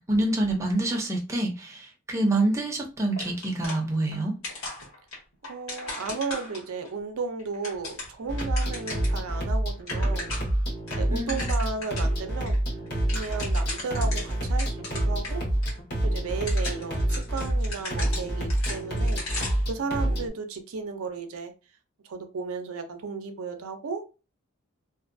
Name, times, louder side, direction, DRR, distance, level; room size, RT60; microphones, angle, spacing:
voice 1, 0.1-4.3 11.1-11.6, right 2 dB, 15° right, 0.5 m, -27 dB
sound 1, 3.2-4.2 4.4-6.9 7.4-9.2 9.5-9.6 9.8-10.6 10.9-12.1 12.5-12.6 12.9-15.3 15.6-15.7 16.3-19.7, left 2 dB, 75° left, 1.4 m, -37 dB
voice 2, 5.5-10.3 10.9-12.6 13.1-15.4 16.0-19.2 19.7-21.5 22.0-24.1, right 4 dB, 85° right, 0.5 m, -34 dB
sound 2, 8.3-20.3, right 1 dB, 50° left, 1.0 m, -27 dB
2.5 x 2.3 x 2.5 m
head